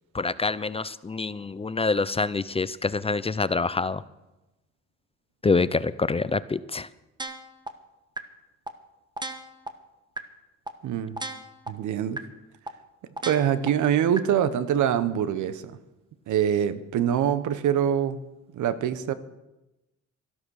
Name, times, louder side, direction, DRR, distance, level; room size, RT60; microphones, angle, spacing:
voice 1, 0.1-4.0 5.4-6.9, left 4 dB, 20° left, 16 dB, 0.5 m, -26 dB
sound 1, 7.2-7.7 8.2-8.3 8.7-8.8 9.2-9.7 10.2-10.3 10.7-10.8 11.2-11.7 12.2-12.3 12.7-12.8 13.2-13.7 14.2-14.3, right 2 dB, 15° right, 1.2 m, -34 dB
voice 2, 10.8-11.2 11.7-12.2 13.2-15.8 16.3-18.2 18.5-19.1, right 9 dB, 75° right, 14 dB, 1.0 m, -24 dB
13.0 x 12.0 x 6.4 m, 0.99 s
cardioid pair, 90°, 30 cm